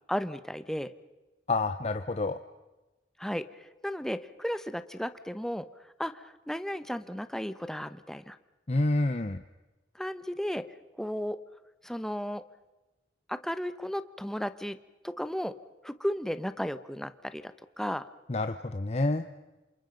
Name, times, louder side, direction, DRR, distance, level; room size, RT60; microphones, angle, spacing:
voice 1, 0.1-0.9 3.2-5.7 6.0-8.4 9.9-11.4 11.8-12.4 13.3-14.8 15.0-15.6 15.8-18.1, equal, 5° left, 12 dB, 0.9 m, -34 dB
voice 2, 1.5-2.4 8.7-9.4 18.3-19.2, left 2 dB, 35° left, 9 dB, 0.8 m, -28 dB
28.0 x 28.0 x 5.3 m, 1.1 s
head